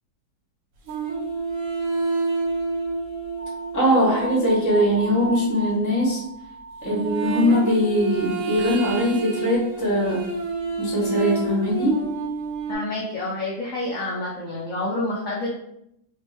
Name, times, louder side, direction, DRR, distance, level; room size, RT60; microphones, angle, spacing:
sound 1, 0.9-5.9 6.8-12.7, right 4 dB, 85° right, 1.4 m, -29 dB
sound 2, 3.4-8.5, right 1 dB, 70° right, 0.7 m, -37 dB
voice 1, 3.7-6.2 6.8-10.2 10.8-12.0, equal, 15° left, -5 dB, 0.6 m, -21 dB
voice 2, 12.7-15.5, left 2 dB, 75° left, -4 dB, 0.7 m, -28 dB
3.4 x 2.2 x 3.2 m, 0.76 s
omnidirectional pair, 2.0 m